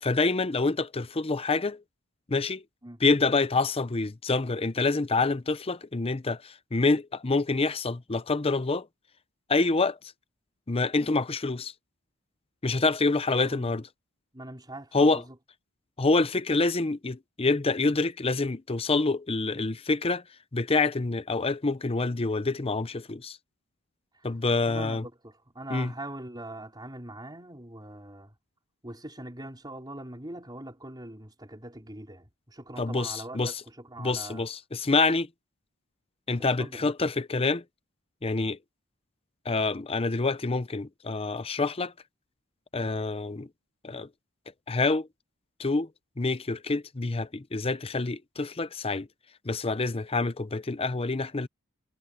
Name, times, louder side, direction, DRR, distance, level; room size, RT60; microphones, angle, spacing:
voice 1, 0.0-1.8 2.3-2.6 3.0-8.9 9.5-10.0 10.7-11.7 12.6-13.9 14.9-15.2 16.0-20.2 20.5-23.4 24.2-25.1 25.7-25.9 32.8-33.6 34.0-35.3 36.3-37.6 38.2-38.6 39.4-41.9 42.7-43.5 43.8-44.1 44.7-45.1 45.6-45.9 46.2-49.1 49.4-51.5, left 3 dB, 25° left, 0.7 m, -27 dB
voice 2, 13.4-13.7 14.3-15.2 24.7-28.3 28.8-34.4 36.6-36.9 42.8-43.0, right 1 dB, 20° right, 4.3 m, -42 dB
head